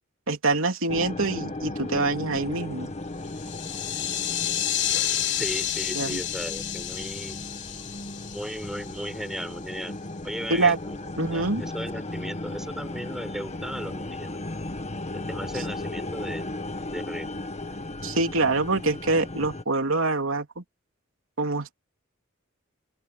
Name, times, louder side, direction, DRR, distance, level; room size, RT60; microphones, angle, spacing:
voice 1, 0.3-2.9 5.9-6.2 10.5-10.8 11.2-11.6 18.0-20.6 21.4-21.7, right 3 dB, 85° right, 3.2 m, -25 dB
sound 1, 0.9-19.6, left 2 dB, 35° left, 1.4 m, -36 dB
sound 2, 3.3-9.3, left 11 dB, 60° left, 3.6 m, -30 dB
voice 2, 5.3-7.4 8.3-9.9 10.2-11.0 11.2-14.4 15.1-16.6 16.9-17.4, equal, ahead, 4.2 m, -36 dB
open air
head